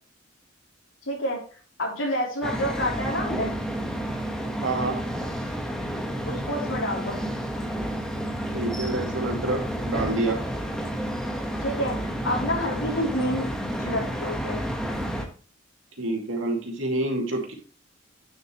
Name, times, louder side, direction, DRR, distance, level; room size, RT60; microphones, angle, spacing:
voice 1, 1.1-1.4 1.8-3.5 6.3-7.2 11.6-13.5 13.8-14.6, equal, 90° left, -1 dB, 3.3 m, -28 dB
sound 1, 2.4-15.2, equal, 5° left, 1.3 m, -30 dB
voice 2, 4.6-5.0 8.5-10.4 16.0-17.5, right 2 dB, 85° right, 2 dB, 2.4 m, -27 dB
9.3 x 6.6 x 3.1 m, 0.40 s
head